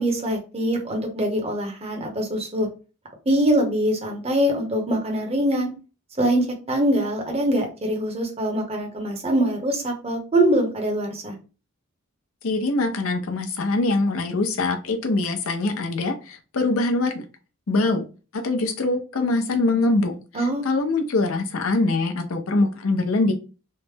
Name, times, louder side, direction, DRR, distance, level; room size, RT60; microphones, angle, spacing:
voice 1, 0.0-2.7 3.3-5.7 6.2-11.4 20.3-20.7, right 1 dB, 30° right, 2 dB, 0.8 m, -23 dB
voice 2, 12.4-17.2 17.7-18.0 18.3-23.3, left 2 dB, 75° left, 5 dB, 0.6 m, -23 dB
3.2 x 2.0 x 3.2 m, 0.33 s
head